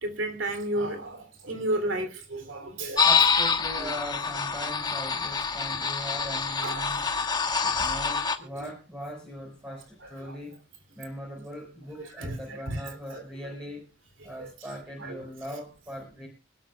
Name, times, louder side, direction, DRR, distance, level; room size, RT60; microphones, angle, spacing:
voice 1, 0.0-3.2 3.7-3.9 6.6-6.9 8.6-8.7 10.2-10.4 12.0-12.8 13.1-13.5 14.4-14.5 15.0-15.2, right 1 dB, 85° right, 8 dB, 3.1 m, -33 dB
sound 1, 3.0-8.4, left 5 dB, 20° left, 1.1 m, -26 dB
voice 2, 3.0-7.1 7.6-10.6 10.9-13.9 14.2-16.3, equal, 10° right, -1 dB, 4.7 m, -40 dB
25.0 x 12.5 x 2.3 m, 0.30 s
head